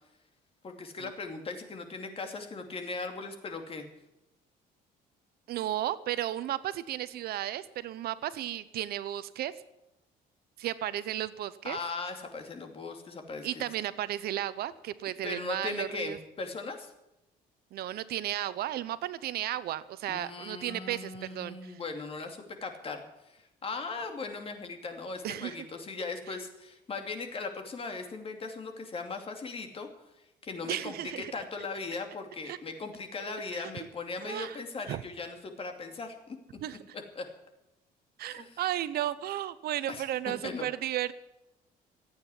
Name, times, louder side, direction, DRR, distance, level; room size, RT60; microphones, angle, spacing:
voice 1, 0.6-3.8 11.6-13.6 15.2-16.9 20.1-29.9 30.4-36.4 37.2-37.3 38.3-38.6 39.9-40.7, left 3 dB, 35° left, 5 dB, 2.7 m, -38 dB
voice 2, 5.5-9.5 10.6-11.8 13.4-16.2 17.7-21.8 25.2-25.6 30.7-31.3 32.5-32.6 33.5-33.6 34.2-34.6 34.9-35.0 36.6-37.0 38.2-41.1, right 13 dB, 70° right, 16 dB, 0.8 m, -34 dB
14.5 x 9.1 x 9.9 m, 0.90 s
cardioid pair, 110°, 17 cm